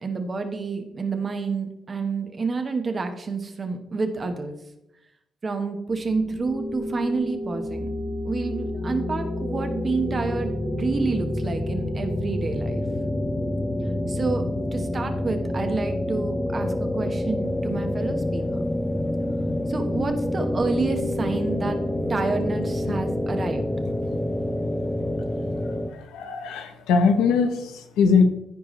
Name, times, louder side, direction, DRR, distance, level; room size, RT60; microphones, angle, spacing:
voice 1, 0.0-4.6 5.4-7.9 8.2-12.8 14.1-14.4 14.7-18.7 19.7-21.8 22.1-23.7, right 4 dB, 35° right, 6 dB, 1.2 m, -29 dB
sound 1, 6.1-25.9, left 1 dB, 10° left, 0.6 m, -28 dB
voice 2, 25.9-28.2, left 5 dB, 90° left, 7 dB, 0.9 m, -21 dB
14.0 x 4.8 x 3.2 m, 0.87 s
cardioid pair, 90°, 0 cm